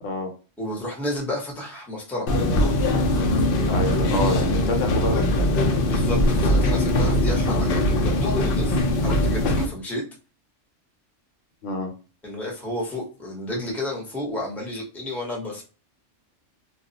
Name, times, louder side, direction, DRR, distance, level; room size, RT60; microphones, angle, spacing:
voice 1, 0.6-2.3 5.8-10.0 12.2-15.6, left 1 dB, ahead, -2 dB, 0.7 m, -31 dB
sound 1, 2.3-9.7, left 1 dB, 60° left, 0.6 m, -21 dB
voice 2, 3.7-5.6 11.6-11.9, left 2 dB, 80° left, 4 dB, 1.0 m, -27 dB
2.4 x 2.0 x 3.8 m, 0.35 s
omnidirectional pair, 1.3 m